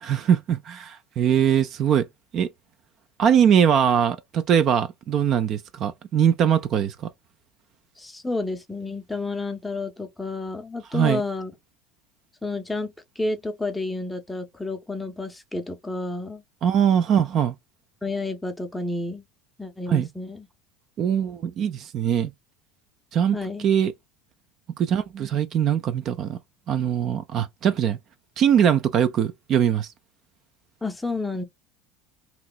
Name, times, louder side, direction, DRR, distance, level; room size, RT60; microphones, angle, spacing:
voice 1, 0.0-2.1 2.3-2.5 3.2-7.1 10.9-11.2 16.6-17.6 19.9-20.1 21.0-22.3 23.1-23.9 24.8-26.4 26.7-28.0 28.4-29.9, right 8 dB, 40° right, 0.3 m, -21 dB
voice 2, 8.0-11.5 12.4-16.4 18.0-19.2 19.6-20.5 23.3-23.7 30.8-31.4, left 2 dB, 5° left, 0.6 m, -30 dB
2.9 x 2.9 x 2.3 m
cardioid pair, 140°, 0 cm